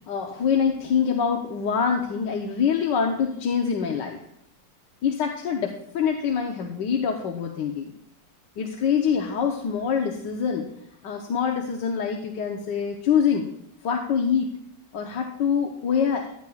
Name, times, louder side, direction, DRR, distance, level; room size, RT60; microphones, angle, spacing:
voice 1, 0.1-4.2 5.0-7.9 8.6-10.7 11.0-13.5 13.8-14.6 14.9-16.3, left 7 dB, 75° left, 1 dB, 1.6 m, -25 dB
15.5 x 10.5 x 2.4 m, 0.77 s
omnidirectional pair, 2.0 m